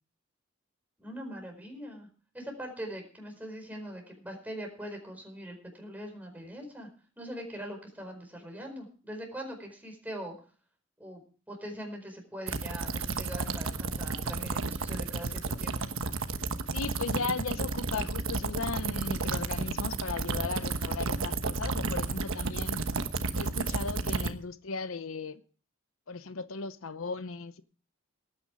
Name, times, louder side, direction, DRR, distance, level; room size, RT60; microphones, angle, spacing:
voice 1, 1.0-2.1 2.3-6.9 7.2-10.3 11.0-15.7, equal, 10° right, 4.7 m, -42 dB
sound 1, 12.5-24.3, right 3 dB, 85° right, 1.2 m, -32 dB
voice 2, 16.7-22.8 23.3-25.4 26.1-27.6, left 4 dB, 90° left, 0.8 m, -36 dB
18.5 x 9.8 x 4.9 m
head